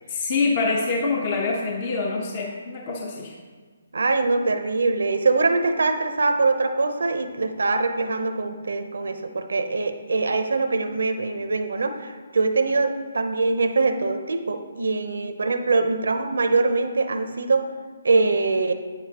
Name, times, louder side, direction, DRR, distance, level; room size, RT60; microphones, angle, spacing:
voice 1, 0.1-3.3, left 3 dB, 40° left, 0 dB, 0.9 m, -25 dB
voice 2, 3.9-17.6 18.0-18.7, right 3 dB, 80° right, 7 dB, 0.7 m, -23 dB
8.5 x 7.7 x 2.9 m, 1.5 s
hypercardioid pair, 150°, 0 cm